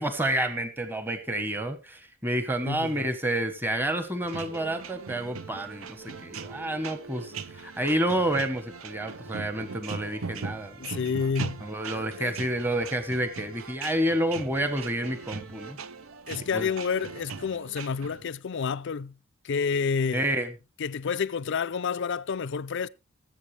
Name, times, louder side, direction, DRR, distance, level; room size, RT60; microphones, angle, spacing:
voice 1, 0.0-11.1 11.6-15.8 16.5-16.7 20.1-20.5, right 1 dB, 10° right, 1.1 m, -29 dB
voice 2, 2.6-3.1 7.2-7.3 10.8-12.3 16.3-19.1 19.4-20.3 20.8-22.9, left 6 dB, 60° left, 0.5 m, -29 dB
sound 1, 4.2-18.3, right 5 dB, 75° right, 0.7 m, -40 dB
20.5 x 7.8 x 3.3 m
head